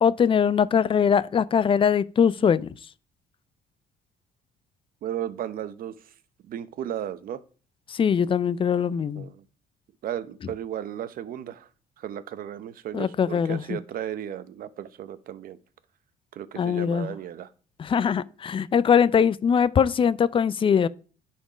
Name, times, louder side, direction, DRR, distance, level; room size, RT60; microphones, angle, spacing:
voice 1, 0.0-2.7 7.9-9.3 12.9-13.8 16.6-17.1 17.8-20.9, left 7 dB, 30° left, 0.4 m, -22 dB
voice 2, 5.0-6.0 6.4-7.4 9.1-9.4 10.0-11.7 12.0-15.6 16.3-17.5, right 10 dB, 60° right, 0.8 m, -35 dB
10.0 x 4.4 x 5.0 m
cardioid pair, 110°, 17 cm